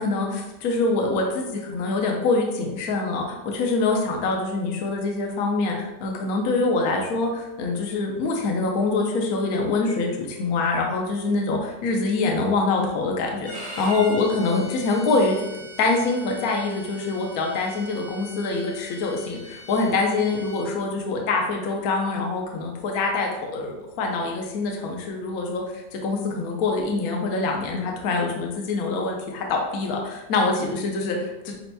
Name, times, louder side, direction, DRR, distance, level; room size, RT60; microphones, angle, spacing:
voice 1, 0.0-15.4 15.8-31.5, left 3 dB, 65° left, 1 dB, 0.9 m, -25 dB
Bowed string instrument, 13.4-20.7, right 1 dB, 20° right, 1.4 m, -41 dB
8.4 x 2.8 x 2.2 m, 1.0 s
omnidirectional pair, 2.0 m